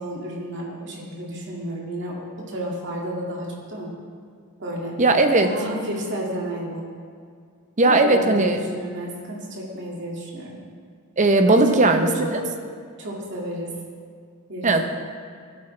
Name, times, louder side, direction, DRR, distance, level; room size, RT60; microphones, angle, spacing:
voice 1, 0.0-3.9 4.6-5.0 5.4-6.8 7.8-10.6 11.5-12.3 13.0-13.7 14.5-14.8, equal, 55° right, -3 dB, 2.1 m, -31 dB
voice 2, 5.0-5.5 7.8-8.6 11.2-12.1 14.6-14.8, right 2 dB, 35° right, 6 dB, 0.7 m, -17 dB
15.5 x 8.6 x 3.3 m, 2.1 s
head